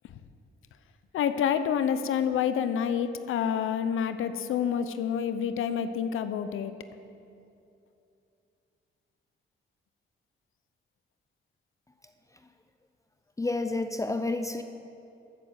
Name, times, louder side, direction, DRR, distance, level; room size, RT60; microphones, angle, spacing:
voice 1, 1.1-6.7, left 8 dB, 80° left, 11 dB, 0.7 m, -28 dB
voice 2, 13.4-14.6, left 2 dB, 15° left, 8 dB, 0.6 m, -29 dB
13.5 x 8.7 x 8.1 m, 2.7 s
cardioid pair, 95°, 21 cm